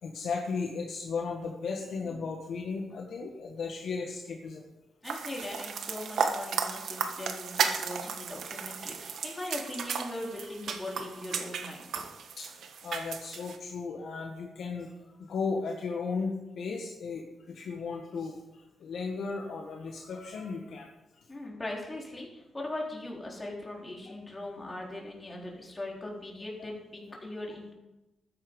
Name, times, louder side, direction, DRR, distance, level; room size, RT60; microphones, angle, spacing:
voice 1, 0.0-4.6 12.4-12.5 12.8-14.9 15.2-20.9, left 4 dB, 70° left, 1 dB, 1.6 m, -35 dB
voice 2, 5.0-12.1 21.3-27.7, left 1 dB, 20° left, -2 dB, 3.8 m, -40 dB
sound 1, 5.0-13.6, right 6 dB, 70° right, 1.3 m, -34 dB
13.0 x 9.6 x 5.4 m, 1.0 s
cardioid pair, 105°, 0 cm